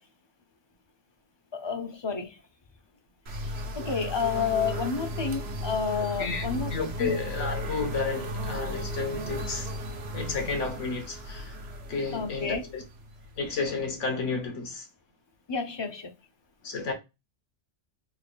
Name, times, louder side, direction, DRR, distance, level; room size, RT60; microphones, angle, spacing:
voice 1, 1.5-2.4 3.4-6.7 7.0-7.2 12.1-12.7 15.5-16.1, left 5 dB, 40° left, 0.4 m, -30 dB
sound 1, 3.3-13.9, equal, 60° right, 1.0 m, -36 dB
voice 2, 6.7-9.7 10.1-11.5 11.9-12.8 13.4-14.8 16.6-16.9, left 4 dB, 80° left, 1.5 m, -31 dB
3.7 x 3.3 x 2.2 m
omnidirectional pair, 1.2 m